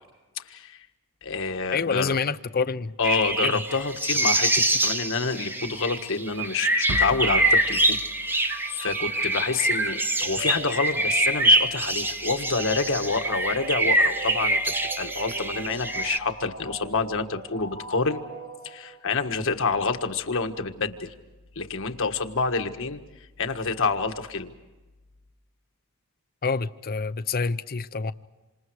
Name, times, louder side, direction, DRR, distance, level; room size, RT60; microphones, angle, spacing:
voice 1, 0.4-0.9 1.2-2.1 3.0-8.0 8.3-18.2 18.6-21.1 21.5-23.0 23.4-24.5, left 4 dB, 65° left, 1.6 m, -28 dB
voice 2, 1.7-2.9 3.4-3.5 26.4-28.1, left 4 dB, 45° left, 0.7 m, -27 dB
sound 1, 3.0-16.2, right 1 dB, 10° right, 1.0 m, -25 dB
sound 2, 6.9-8.9, right 1 dB, 90° right, 1.2 m, -37 dB
sound 3, 8.5-19.2, right 4 dB, 60° right, 2.6 m, -41 dB
27.5 x 27.0 x 4.8 m
head